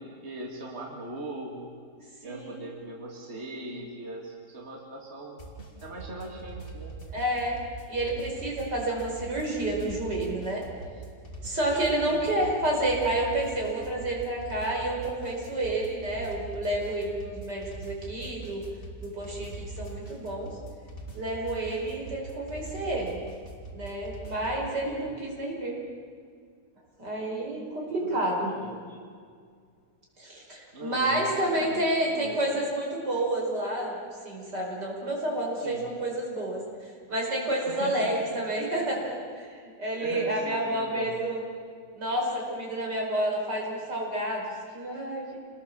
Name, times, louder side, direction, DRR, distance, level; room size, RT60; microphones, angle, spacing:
voice 1, 0.0-1.7 2.2-5.4 5.8-6.9 12.1-12.5 24.8-25.1 28.0-29.0 30.7-31.9 32.1-32.4 35.6-35.8 37.7-38.2 40.0-41.2, right 2 dB, 40° right, -1 dB, 3.0 m, -40 dB
voice 2, 2.2-2.7 7.1-7.6 7.9-10.6 11.4-18.6 19.0-20.5 21.1-23.2 23.7-25.8 27.0-28.5 30.2-34.0 34.2-41.4 41.9-45.4, right 1 dB, 80° right, -1 dB, 5.8 m, -30 dB
sound 1, 5.4-24.6, right 2 dB, 30° left, 3.4 m, -42 dB
28.0 x 20.5 x 7.3 m, 2.1 s
omnidirectional pair, 1.8 m